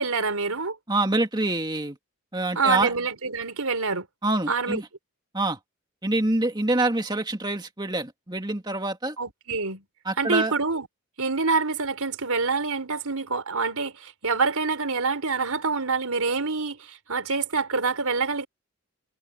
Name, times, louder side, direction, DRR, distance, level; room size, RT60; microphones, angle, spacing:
voice 1, 0.0-0.8 2.6-4.1 4.5-4.8 9.2-9.8 10.2-10.9 11.2-18.5, right 4 dB, 85° right, 4.1 m, -26 dB
voice 2, 0.9-2.0 2.3-2.9 4.2-4.9 5.3-5.6 6.0-9.2 10.0-10.5, right 2 dB, 20° right, 2.2 m, -26 dB
head